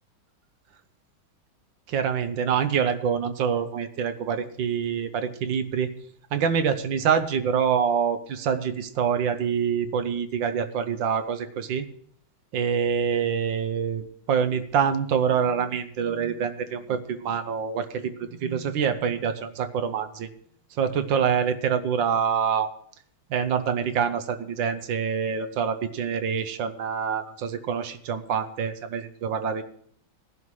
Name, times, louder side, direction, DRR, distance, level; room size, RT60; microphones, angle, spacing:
voice 1, 1.9-5.9 6.3-11.9 12.5-20.3 20.8-22.7 23.3-29.6, right 7 dB, 65° right, 9 dB, 1.5 m, -26 dB
18.5 x 11.0 x 3.2 m, 0.63 s
omnidirectional pair, 2.3 m